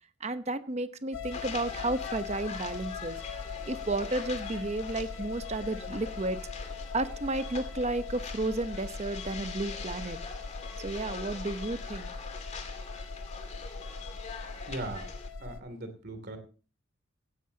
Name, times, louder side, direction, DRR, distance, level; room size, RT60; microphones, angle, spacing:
voice 1, 0.2-3.2 3.7-6.4 6.9-10.2 10.8-12.1, right 2 dB, 30° right, 11 dB, 0.9 m, -32 dB
sound 1, 1.1-15.6, left 5 dB, 65° left, 0.8 m, -40 dB
sound 2, 1.3-15.3, left 5 dB, 35° left, 2.3 m, -44 dB
voice 2, 14.6-15.1 15.4-16.4, right 2 dB, 50° right, 8 dB, 2.8 m, -39 dB
16.0 x 16.0 x 2.8 m, 0.37 s
head